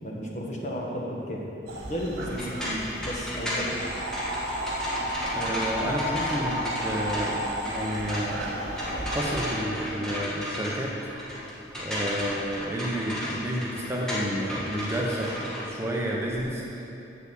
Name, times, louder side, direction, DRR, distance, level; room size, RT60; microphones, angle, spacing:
voice 1, 0.0-1.4 1.9-3.9 5.5-5.6, equal, 35° left, -2 dB, 1.4 m, -33 dB
sound 1, 1.7-9.5, equal, 55° right, 1.4 m, -33 dB
sound 2, 2.2-16.4, equal, 5° left, 1.6 m, -34 dB
voice 2, 5.3-10.9 11.8-17.0, equal, 15° right, -3 dB, 0.9 m, -31 dB
7.5 x 7.4 x 7.5 m, 2.9 s
head